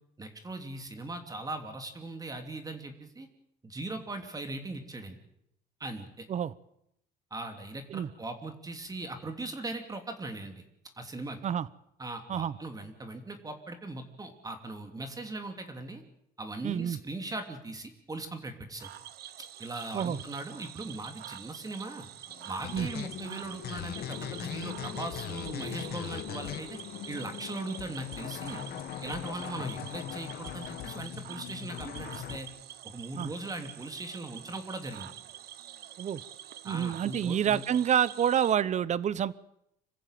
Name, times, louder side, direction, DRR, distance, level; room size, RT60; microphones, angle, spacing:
voice 1, 0.2-3.3 3.6-5.2 5.8-6.2 7.3-10.6 11.0-11.4 12.0-16.0 16.4-18.9 19.6-22.1 22.5-26.8 27.1-28.6 29.0-32.5 32.8-35.1 36.6-37.6, right 2 dB, 20° right, 6 dB, 2.9 m, -39 dB
voice 2, 16.6-17.0 19.9-20.2 22.7-22.9 33.2-33.3 36.0-36.2 36.6-39.3, right 9 dB, 45° right, 19 dB, 0.9 m, -28 dB
Cricket / Frog, 18.8-38.6, right 12 dB, 70° right, 1.2 m, -47 dB
sound 1, 22.3-29.7, left 8 dB, 45° left, 1.8 m, -51 dB
sound 2, 22.6-32.4, left 11 dB, 70° left, 1.5 m, -40 dB
26.5 x 14.5 x 9.0 m, 0.78 s
cardioid pair, 110°, 17 cm